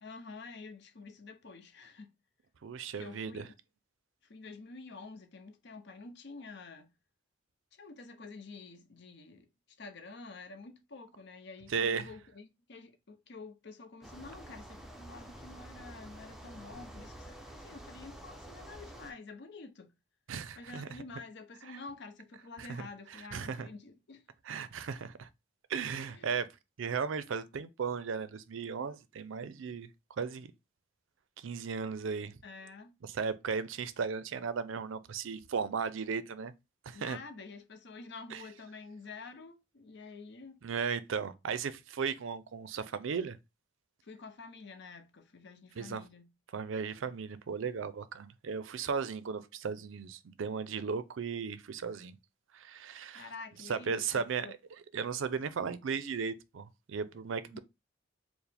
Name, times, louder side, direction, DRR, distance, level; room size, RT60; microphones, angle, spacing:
voice 1, 0.0-2.1 3.0-3.5 4.2-6.9 7.7-9.5 9.8-19.9 20.6-24.2 26.1-26.4 32.4-32.9 36.9-40.6 44.0-46.3 53.1-54.6 57.5-57.6, left 4 dB, 60° left, 0.6 m, -49 dB
voice 2, 2.6-3.5 11.7-12.1 20.3-20.9 22.6-22.9 23.3-23.7 24.5-25.3 25.7-26.5 26.8-29.9 30.2-30.5 31.4-32.4 33.1-36.5 36.9-37.2 38.3-38.4 40.6-43.4 45.8-46.0 46.5-52.2 52.5-53.2 53.7-54.5 54.9-57.6, right 6 dB, 75° right, 0.4 m, -36 dB
sound 1, 14.0-19.1, right 1 dB, ahead, 0.5 m, -49 dB
4.6 x 2.1 x 3.3 m
head